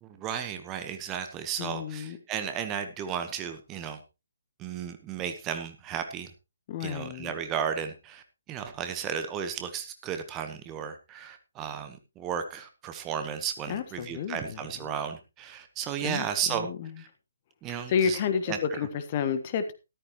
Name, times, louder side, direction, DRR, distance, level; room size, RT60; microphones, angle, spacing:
voice 1, 0.0-4.0 4.6-6.3 6.8-8.2 8.5-16.7 17.0-17.1 17.6-18.2 18.5-18.6, right 8 dB, 15° right, 8 dB, 1.2 m, -34 dB
voice 2, 1.6-2.2 6.7-7.3 13.7-14.6 16.0-17.0 17.9-19.7, left 7 dB, 30° left, 9 dB, 1.5 m, -30 dB
13.5 x 13.5 x 3.1 m, 0.28 s
figure-of-eight pair, 140°, 0 cm